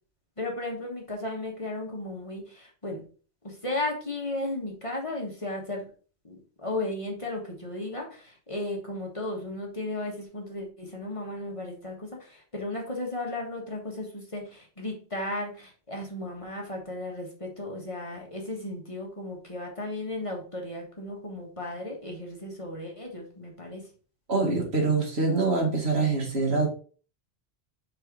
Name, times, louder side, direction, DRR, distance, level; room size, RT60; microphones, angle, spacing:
voice 1, 0.4-3.0 3.4-5.8 6.2-23.8, left 2 dB, 30° left, 0 dB, 1.5 m, -35 dB
voice 2, 24.3-26.7, right 3 dB, 75° right, 0 dB, 2.1 m, -24 dB
4.9 x 4.7 x 4.5 m, 0.40 s
omnidirectional pair, 1.1 m